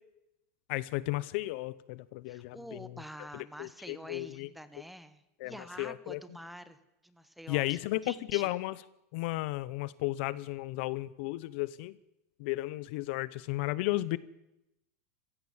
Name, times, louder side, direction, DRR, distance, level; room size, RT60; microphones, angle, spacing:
voice 1, 0.7-2.9 3.6-4.5 5.4-5.5 5.8-6.2 7.5-8.8 9.1-11.9 12.4-14.2, left 18 dB, 50° left, 19 dB, 0.7 m, -34 dB
voice 2, 2.3-6.8 7.0-8.5, equal, ahead, 13 dB, 0.9 m, -47 dB
27.0 x 16.0 x 7.3 m, 0.87 s
supercardioid pair, 175°, 8 cm